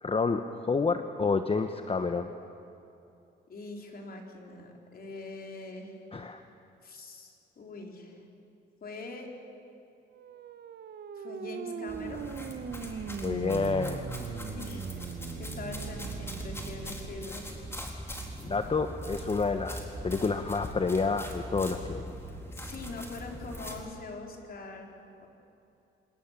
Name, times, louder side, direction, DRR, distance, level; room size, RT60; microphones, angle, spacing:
voice 1, 0.0-2.3 6.1-6.4 13.2-14.1 18.4-22.0, left 4 dB, 30° left, 7 dB, 1.1 m, -29 dB
voice 2, 3.5-6.0 6.8-8.2 8.8-9.3 11.1-12.3 14.4-17.5 22.5-24.9 25.2-25.3, left 3 dB, 50° left, 1 dB, 4.5 m, -43 dB
sound 1, 10.1-17.2, right 7 dB, 55° right, 1.2 m, -40 dB
sound 2, 11.9-23.8, equal, 10° left, 4.1 m, -41 dB
27.0 x 20.5 x 7.6 m, 2.7 s
cardioid pair, 90°, 20 cm